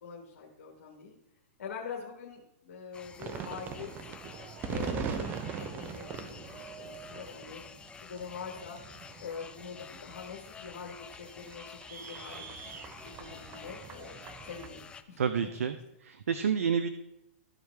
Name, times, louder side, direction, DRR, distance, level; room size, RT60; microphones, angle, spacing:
voice 1, 0.0-1.2 1.6-3.9 4.7-7.6 8.0-8.8 9.2-15.2, left 6 dB, 75° left, -1 dB, 1.6 m, -44 dB
sound 1, 2.9-15.0, left 6 dB, 10° left, 0.5 m, -50 dB
sound 2, 3.2-14.7, right 6 dB, 25° right, 0.7 m, -41 dB
voice 2, 15.2-15.8 16.0-16.9, right 7 dB, 85° right, 10 dB, 0.6 m, -29 dB
14.0 x 4.8 x 3.4 m, 0.85 s
hypercardioid pair, 135°, 8 cm